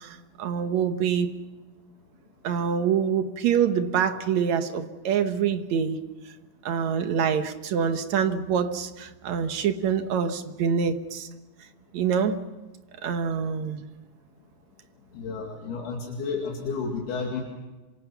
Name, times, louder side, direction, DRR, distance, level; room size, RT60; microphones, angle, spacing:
voice 1, 0.0-1.3 2.4-6.0 6.7-11.3 11.9-12.4 13.0-13.8, right 7 dB, 70° right, 8 dB, 1.8 m, -25 dB
voice 2, 15.1-17.4, left 4 dB, 70° left, 0 dB, 4.3 m, -31 dB
27.5 x 26.0 x 5.9 m, 1.1 s
omnidirectional pair, 4.8 m